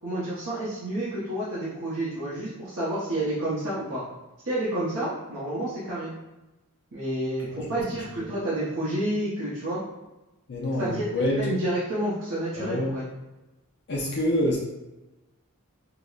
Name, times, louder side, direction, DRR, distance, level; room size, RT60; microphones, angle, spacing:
voice 1, 0.0-4.0 4.4-6.1 6.9-9.8 10.8-13.1, right 1 dB, 60° right, -9 dB, 0.8 m, -29 dB
voice 2, 10.5-11.4 12.6-12.9 13.9-14.6, left 1 dB, 50° left, -4 dB, 0.5 m, -26 dB
4.7 x 2.1 x 2.4 m, 1.0 s
head